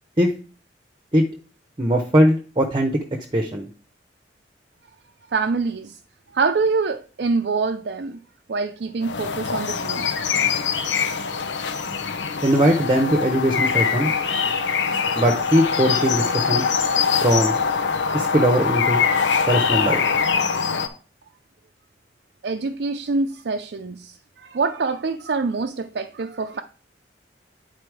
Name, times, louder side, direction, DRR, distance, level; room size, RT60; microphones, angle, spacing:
voice 1, 1.8-3.0 3.3-3.7 12.4-14.1 15.1-16.6 17.2-17.6 18.1-19.0 19.5-20.0, equal, 25° right, 0.8 m, -20 dB
voice 2, 5.3-6.0 6.3-8.2 8.5-10.1 10.4-10.6 22.4-26.6, right 4 dB, 60° right, 0.5 m, -25 dB
sound 1, 9.0-20.9, left 6 dB, 85° left, 0.9 m, -23 dB
9.5 x 4.2 x 4.7 m
head